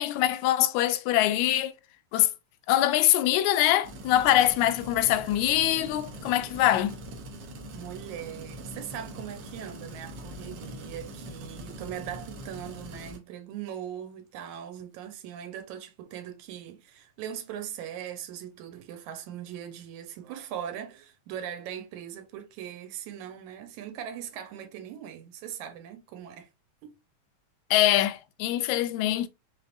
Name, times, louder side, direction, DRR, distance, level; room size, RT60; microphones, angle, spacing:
voice 1, 0.0-1.7 2.1-2.3 2.7-7.0 27.7-29.3, left 13 dB, 85° left, 1.9 m, -23 dB
sound 1, 3.8-13.2, equal, 70° right, 1.1 m, -42 dB
voice 2, 7.7-26.5 26.8-27.0, right 10 dB, 85° right, 2.1 m, -40 dB
5.4 x 3.4 x 2.4 m
omnidirectional pair, 3.3 m